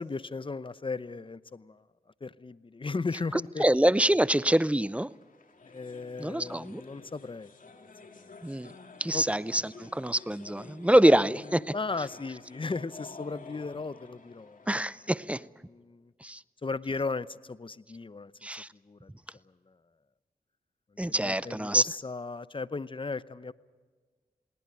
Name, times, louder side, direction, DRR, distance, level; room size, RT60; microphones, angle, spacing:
voice 1, 0.0-1.8 2.2-3.6 5.6-7.5 8.2-8.3 9.1-9.2 11.1-11.3 11.6-14.7 15.6-16.1 16.6-18.3 18.8-19.1 19.7-19.8 21.1-23.5, left 4 dB, 35° left, 17 dB, 0.8 m, -36 dB
voice 2, 3.3-5.1 6.2-6.8 8.4-8.7 9.0-11.7 14.7-15.4 16.2-16.4 18.4-18.7 21.0-21.8, right 1 dB, 10° right, 19 dB, 0.6 m, -25 dB
sound 1, 4.7-15.5, left 3 dB, 60° left, 2.7 m, -51 dB
20.0 x 18.5 x 9.0 m, 1.4 s
cardioid pair, 45°, 15 cm